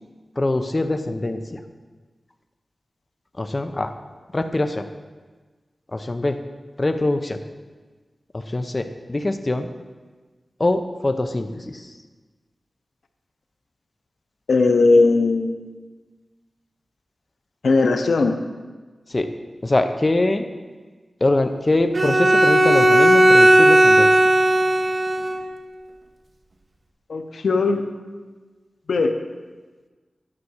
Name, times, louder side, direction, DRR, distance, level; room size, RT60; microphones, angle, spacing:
voice 1, 0.4-1.6 3.4-3.9 4.3-4.8 5.9-6.4 6.8-7.4 8.3-9.7 10.6-11.9 19.1-19.3 19.6-20.4 21.2-24.2, left 2 dB, 30° left, 7 dB, 0.6 m, -23 dB
voice 2, 14.5-15.6 17.6-18.4 27.1-27.8 28.9-29.1, left 3 dB, 90° left, 7 dB, 0.7 m, -18 dB
Bowed string instrument, 21.9-25.5, right 1 dB, 45° right, 0.9 m, -15 dB
9.7 x 5.8 x 6.4 m, 1.3 s
wide cardioid pair, 100°, 0 cm